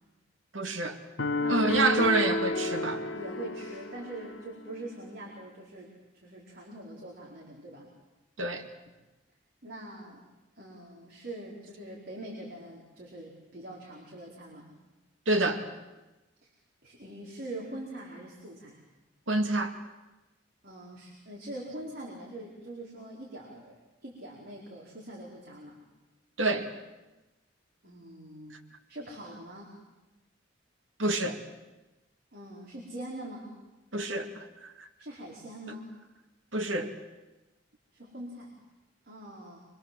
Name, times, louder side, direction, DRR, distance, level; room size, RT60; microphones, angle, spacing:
voice 1, 0.5-1.0 1.5-3.0 8.4-8.6 15.3-15.6 19.3-19.7 26.4-26.7 31.0-31.4 33.9-34.9 36.5-36.9, right 2 dB, 80° right, 5 dB, 2.5 m, -28 dB
sound 1, 1.2-4.4, left 2 dB, 80° left, 1.7 m, -31 dB
voice 2, 1.4-1.8 3.1-5.9 6.2-7.9 9.6-10.2 10.6-14.7 16.8-18.8 20.6-23.8 24.0-25.8 27.8-28.5 28.9-29.7 32.3-33.6 35.0-35.9 37.9-38.5 39.1-39.6, right 1 dB, 55° right, -3 dB, 4.7 m, -43 dB
25.5 x 24.5 x 7.8 m, 1.1 s
head